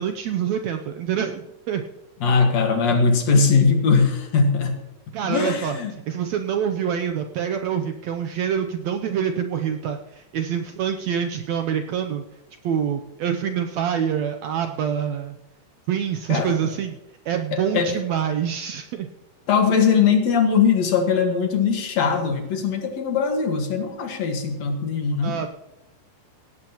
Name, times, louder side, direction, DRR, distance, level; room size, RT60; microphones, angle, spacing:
voice 1, 0.0-1.8 5.1-5.7 6.1-12.2 12.6-15.4 15.9-17.0 17.3-19.1 25.2-25.5, right 8 dB, 75° right, 6 dB, 1.6 m, -26 dB
voice 2, 2.2-4.8 5.2-5.9 16.3-16.5 17.5-17.9 19.5-25.4, left 5 dB, 60° left, 4 dB, 2.5 m, -20 dB
18.0 x 16.5 x 2.9 m, 0.98 s
omnidirectional pair, 3.7 m